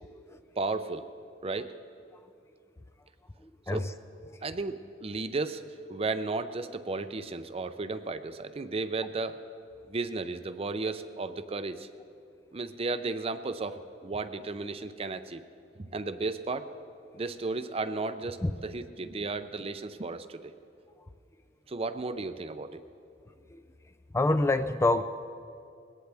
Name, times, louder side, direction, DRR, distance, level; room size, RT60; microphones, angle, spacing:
voice 1, 0.6-1.1 1.4-1.7 3.7-3.9 4.4-9.4 9.9-11.9 12.5-15.4 15.8-16.7 17.1-20.5 21.7-22.8, right 3 dB, 35° right, 11 dB, 0.6 m, -34 dB
voice 2, 3.4-3.9 4.3-4.4 18.4-18.5 23.5-23.7 24.1-25.0, left 2 dB, 15° left, 10 dB, 0.4 m, -27 dB
21.0 x 17.5 x 3.5 m, 2.5 s
head